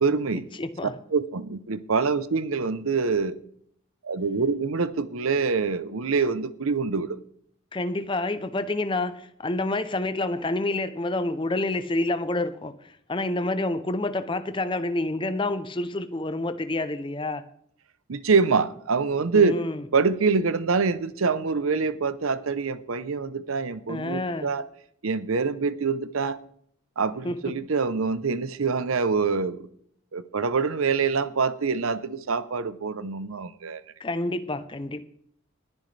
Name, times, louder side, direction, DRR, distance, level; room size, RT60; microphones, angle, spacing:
voice 1, 0.0-0.5 1.1-3.4 4.0-7.2 18.1-19.6 19.9-24.7 25.0-26.4 27.0-29.6 30.1-33.8, right 4 dB, 85° right, 0.7 m, -25 dB
voice 2, 0.5-1.0 7.7-17.4 19.3-19.8 23.9-24.5 27.2-27.5 34.0-35.1, left 2 dB, 25° left, 0.6 m, -28 dB
20.5 x 10.5 x 3.3 m
head